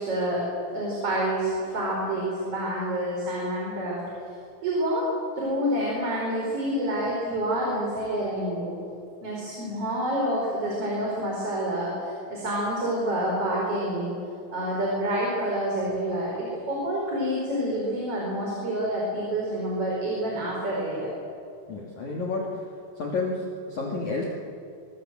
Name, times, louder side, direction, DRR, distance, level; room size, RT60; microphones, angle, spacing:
voice 1, 0.0-4.0 4.6-5.1 5.3-8.7 9.2-14.1 14.5-21.1, right 1 dB, 30° right, -3 dB, 5.2 m, -28 dB
voice 2, 21.7-22.7 23.0-24.3, left 3 dB, 45° left, -2 dB, 3.0 m, -30 dB
25.5 x 23.0 x 7.6 m, 2.5 s
omnidirectional pair, 5.4 m